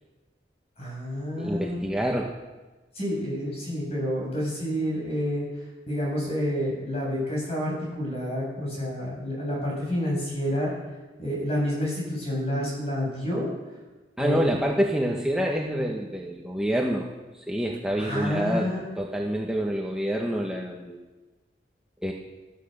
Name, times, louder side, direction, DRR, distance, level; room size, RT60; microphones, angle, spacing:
voice 1, 0.8-1.8 2.9-5.4 5.9-10.7 11.2-13.5 14.2-14.4 18.0-18.8, equal, 35° left, -3 dB, 7.4 m, -29 dB
voice 2, 1.4-2.3 14.2-17.1 17.3-21.0 22.0-22.1, equal, 5° right, -1 dB, 1.2 m, -27 dB
16.0 x 13.0 x 6.7 m, 1.2 s
head